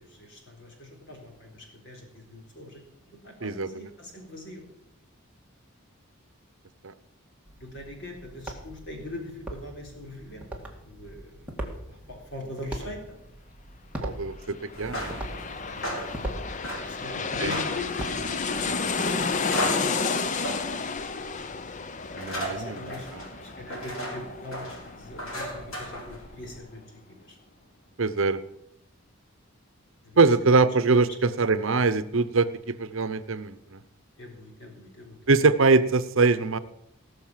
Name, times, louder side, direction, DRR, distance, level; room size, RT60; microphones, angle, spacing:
voice 1, 0.0-4.6 7.6-11.4 11.8-13.2 15.7-16.0 16.8-18.8 22.4-27.4 30.0-30.3 34.2-35.2, left 2 dB, 55° left, 1 dB, 4.0 m, -42 dB
voice 2, 3.4-3.9 6.8-6.9 14.0-15.1 17.2-17.6 19.6-20.0 22.1-23.2 28.0-28.4 30.2-33.8 35.3-36.6, right 3 dB, 70° right, 13 dB, 0.8 m, -23 dB
sound 1, 7.4-19.2, right 1 dB, 5° right, 2.0 m, -41 dB
sound 2, 14.6-26.0 26.3-26.4, left 4 dB, 35° left, 0.6 m, -31 dB
sound 3, 14.7-26.6, equal, 75° left, 4.2 m, -37 dB
18.5 x 6.6 x 7.4 m, 0.81 s
head